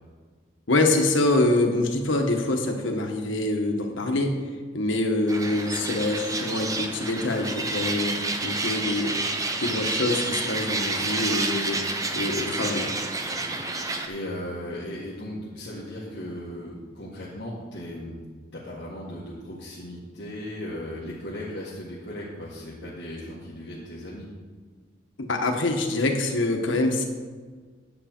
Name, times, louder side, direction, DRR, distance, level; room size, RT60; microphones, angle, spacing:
voice 1, 0.7-4.4 4.7-9.1 9.6-11.8 12.1-12.9 25.3-27.0, left 2 dB, 90° left, 3 dB, 1.3 m, -25 dB
sound 1, 5.3-14.1, right 3 dB, 20° right, 0.7 m, -29 dB
voice 2, 14.1-18.2 18.5-24.3, left 1 dB, 65° left, -7 dB, 1.7 m, -37 dB
9.7 x 8.2 x 4.5 m, 1.5 s
head